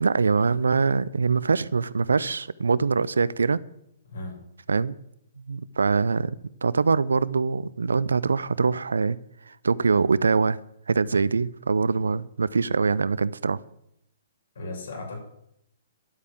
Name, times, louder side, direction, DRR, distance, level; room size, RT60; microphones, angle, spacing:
voice 1, 0.0-3.6 4.7-5.0 5.5-9.2 9.5-10.6 10.9-13.6, right 4 dB, 75° right, 20 dB, 0.5 m, -23 dB
voice 2, 4.0-4.5 11.9-12.1 14.5-15.2, left 2 dB, 65° left, 1 dB, 5.9 m, -36 dB
11.5 x 8.5 x 7.7 m, 0.78 s
figure-of-eight pair, 125°, 0 cm